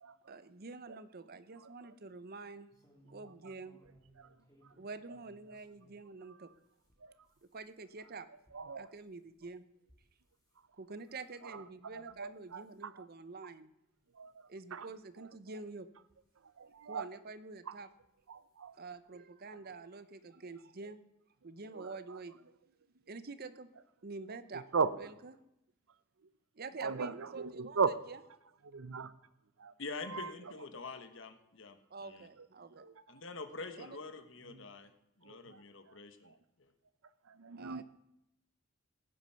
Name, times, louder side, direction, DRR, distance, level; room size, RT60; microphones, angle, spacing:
voice 1, 0.3-2.7 3.1-3.8 4.8-6.5 7.5-8.3 8.7-9.7 10.8-13.7 14.5-15.9 16.8-17.9 18.7-21.1 21.4-22.4 23.1-23.7 24.0-24.6 24.9-25.4 26.5-28.2 31.9-32.9 33.8-34.0 37.6-37.8, right 3 dB, 50° right, 13 dB, 0.8 m, -47 dB
sound 1, 2.7-6.0 6.5-10.6 11.0-11.4 11.9-12.2 12.5-12.8 13.4-13.5 13.9-14.0 15.1-15.2 16.0-16.8 17.9-18.1 18.5-18.6 18.9-19.0, right 1 dB, 20° left, 3.3 m, -67 dB
voice 2, 8.5-8.9 11.4-13.0 14.2-14.4 14.7-14.9 16.6-17.1 17.7-17.8 18.3-18.7 21.7-22.2 24.7-25.1 26.8-28.0 28.6-29.1 29.6-29.7 30.1-30.3 32.7-32.9 34.5-34.6 35.2-35.6 36.2-36.3 37.3-37.8, right 5 dB, 85° right, 15 dB, 0.7 m, -37 dB
voice 3, 29.8-32.3 33.1-34.9 35.2-36.3 36.6-36.7, left 3 dB, 65° left, 9 dB, 1.2 m, -46 dB
15.5 x 9.4 x 5.7 m, 0.85 s
head